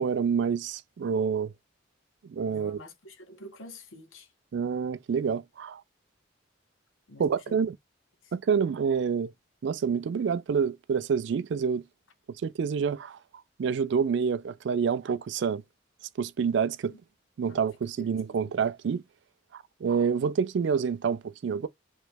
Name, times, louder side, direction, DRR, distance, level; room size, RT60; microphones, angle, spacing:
voice 1, 0.0-1.5 2.3-2.8 4.5-5.8 7.2-7.8 8.3-9.3 9.6-11.8 12.4-13.2 13.6-15.6 16.2-16.9 17.4-19.0 19.5-21.7, right 6 dB, 60° right, 0.3 m, -27 dB
voice 2, 2.5-4.3 7.1-7.6 8.2-8.3 16.9-17.0 17.5-17.7 18.0-18.5, left 1 dB, 85° left, 1.2 m, -48 dB
3.0 x 2.9 x 3.3 m
head